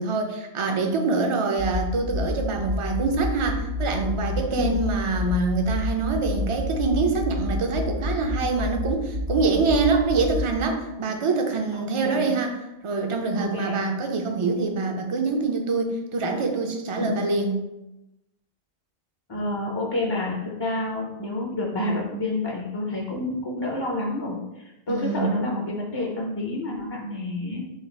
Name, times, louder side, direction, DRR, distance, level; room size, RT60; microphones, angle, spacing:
voice 1, 0.0-12.6 12.8-17.5 24.9-25.3, right 3 dB, 40° right, 3 dB, 0.4 m, -25 dB
sound 1, 1.6-10.5, left 2 dB, 75° right, 1.3 m, -29 dB
voice 2, 11.7-12.3 13.3-13.8 17.0-17.2 19.3-27.7, left 2 dB, 35° left, -2 dB, 0.5 m, -29 dB
4.9 x 2.4 x 4.3 m, 0.96 s
omnidirectional pair, 1.2 m